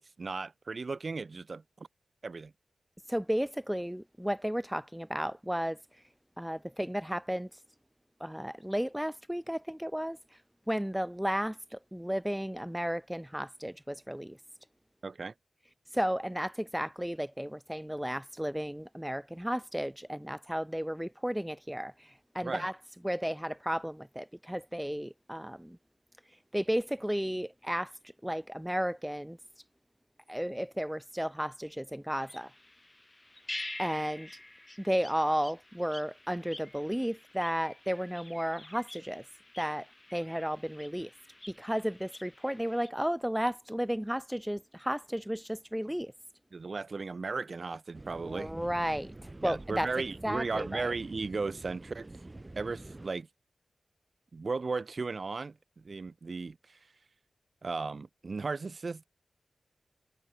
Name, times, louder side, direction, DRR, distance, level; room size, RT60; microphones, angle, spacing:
voice 1, 0.0-1.9 2.2-2.5 15.0-15.3 22.4-22.7 46.5-48.5 49.4-52.1 52.6-53.3 54.3-56.8 57.6-59.0, right 4 dB, 55° right, 4.9 m, -36 dB
voice 2, 3.1-5.8 6.4-7.5 8.2-10.2 10.7-14.4 15.9-22.7 23.0-25.8 26.5-27.9 28.2-29.4 30.3-32.5 33.8-34.3 34.8-39.2 39.6-39.9 40.1-41.1 41.6-46.1 48.2-49.1 49.4-49.9 50.2-50.9, equal, 5° right, 0.8 m, -33 dB
sound 1, 32.2-42.9, left 1 dB, 20° left, 1.9 m, -48 dB
stonehouse fafe ambience, 47.9-53.1, right 2 dB, 25° right, 1.6 m, -47 dB
wide cardioid pair, 70°, 0 cm